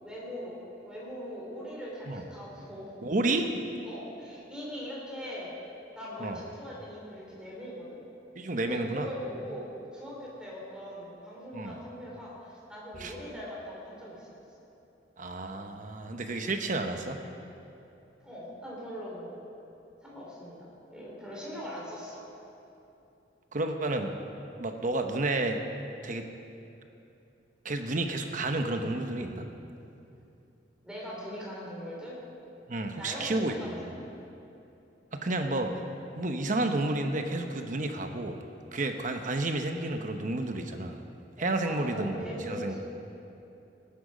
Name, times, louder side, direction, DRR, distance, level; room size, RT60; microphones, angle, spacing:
voice 1, 0.0-2.9 3.8-5.5 6.0-8.0 8.6-14.3 18.2-19.4 20.0-22.2 30.8-32.2 33.0-34.0 40.4-40.5 41.3-42.8, equal, 5° right, -5 dB, 3.8 m, -41 dB
voice 2, 3.0-3.5 6.2-6.4 8.4-9.1 11.5-11.8 13.0-13.2 15.2-17.2 23.5-24.1 24.6-25.6 26.0-26.3 27.6-29.5 32.7-33.8 35.1-35.8 36.2-38.4 38.7-41.0 41.4-42.8, right 2 dB, 45° right, 6 dB, 0.9 m, -31 dB
18.5 x 10.5 x 5.1 m, 2.8 s
head